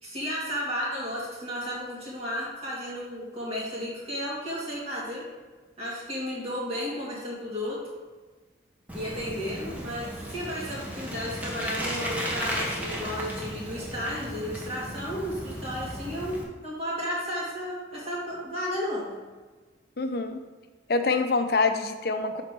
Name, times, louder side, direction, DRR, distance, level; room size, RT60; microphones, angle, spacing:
voice 1, 0.0-5.2 5.8-7.8 8.9-16.4 16.6-19.1, equal, 30° right, -6 dB, 2.4 m, -33 dB
Bicycle, 8.9-16.4, equal, 10° right, 1.0 m, -35 dB
voice 2, 20.0-20.4 20.9-22.4, left 3 dB, 55° left, 7 dB, 0.6 m, -25 dB
7.1 x 4.2 x 6.1 m, 1.3 s
head